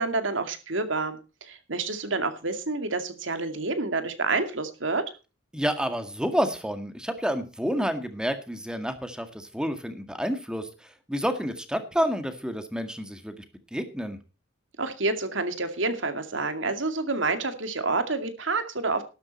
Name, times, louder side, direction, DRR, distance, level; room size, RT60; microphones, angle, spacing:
voice 1, 0.0-5.1 14.8-19.0, right 3 dB, 75° right, 8 dB, 2.3 m, -28 dB
voice 2, 5.5-13.4 13.7-14.2, equal, 5° right, 8 dB, 1.9 m, -29 dB
12.5 x 12.0 x 4.2 m, 0.32 s
head